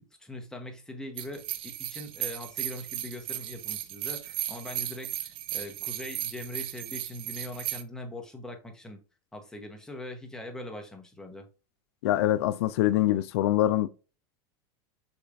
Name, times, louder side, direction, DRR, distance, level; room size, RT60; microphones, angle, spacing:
voice 1, 0.2-9.0 9.3-11.5, left 1 dB, 5° left, 1.1 m, -41 dB
sound 1, 1.2-7.8, right 12 dB, 40° right, 0.6 m, -36 dB
voice 2, 12.0-13.9, left 14 dB, 85° left, 0.4 m, -24 dB
6.5 x 3.2 x 2.6 m
supercardioid pair, 130°, 13 cm